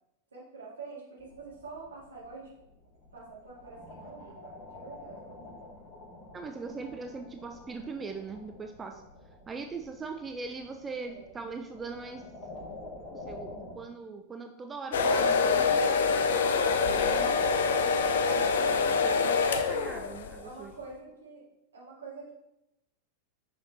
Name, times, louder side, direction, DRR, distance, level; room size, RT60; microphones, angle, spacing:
voice 1, 0.3-2.5 3.1-5.5 11.0-11.3 20.4-21.4 21.7-22.3, right 4 dB, 70° right, -6 dB, 2.4 m, -46 dB
sound 1, 1.2-13.8, left 2 dB, 30° left, 1.9 m, -48 dB
voice 2, 6.3-9.0 9.5-12.2 13.1-15.8 16.7-17.6 17.8-18.0 18.3-20.7, right 4 dB, 20° right, 5 dB, 0.4 m, -41 dB
sound 2, 14.9-20.4, left 5 dB, 60° left, 0.5 m, -25 dB
6.4 x 6.0 x 2.7 m, 0.90 s
figure-of-eight pair, 90°, 0 cm